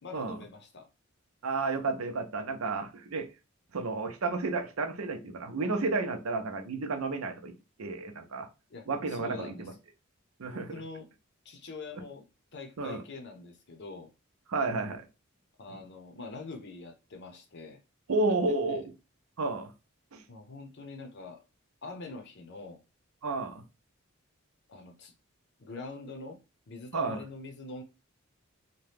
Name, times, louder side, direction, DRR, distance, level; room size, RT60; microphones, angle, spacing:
voice 1, 0.0-0.9 8.7-9.7 10.4-11.1 11.4-12.2 12.5-14.1 15.6-17.8 18.7-18.8 20.3-21.4 21.8-22.8 24.7-25.1 25.6-26.4 26.7-27.8, left 3 dB, 55° left, 0.6 m, -44 dB
voice 2, 1.4-3.3 3.7-7.5 7.8-8.5 8.9-9.7 10.4-10.7 12.8-13.0 14.5-15.0 18.1-18.8 19.4-19.7 20.1-20.2 23.2-23.6 26.9-27.2, right 3 dB, 80° right, 0.6 m, -31 dB
2.8 x 2.2 x 3.3 m
head